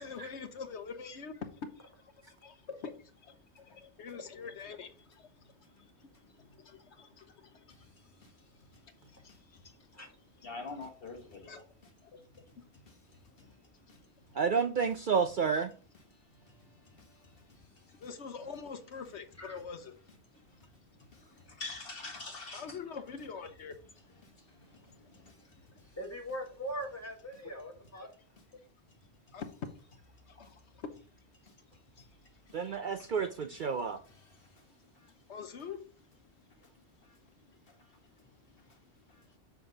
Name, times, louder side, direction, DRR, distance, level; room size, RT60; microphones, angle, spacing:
voice 1, 0.0-1.4 1.7-9.9 10.4-10.5 11.5-11.6 12.0-12.7 13.4-13.5 17.6-19.9 22.5-23.8 29.3-29.9 30.3-30.9 32.0-32.1 32.5-32.6 35.2-35.8 38.1-38.2 38.6-38.7, left 5 dB, 75° left, 1.2 m, -46 dB
voice 2, 6.2-6.6 7.7-8.3 8.7-8.8 9.1-9.4 10.4-11.6 12.3-12.4 12.9-13.0 13.4-13.6 13.9-14.0 14.3-14.4 16.1-18.1 20.3-20.7 21.1-21.2 21.5-22.8 24.2-26.0 30.4-30.5 31.5-32.2 32.5-32.6 33.0-33.1 33.5-34.7 35.0-35.1 37.0-37.2 37.7-38.8 39.1-39.3, left 3 dB, 55° left, 1.7 m, -50 dB
voice 3, 9.9-10.4 13.4-13.5 19.4-19.6 25.0-28.1, equal, 15° left, 1.9 m, -42 dB
voice 4, 14.3-15.7 32.5-34.0, right 6 dB, 55° right, 0.6 m, -30 dB
7.6 x 5.9 x 3.9 m
omnidirectional pair, 1.2 m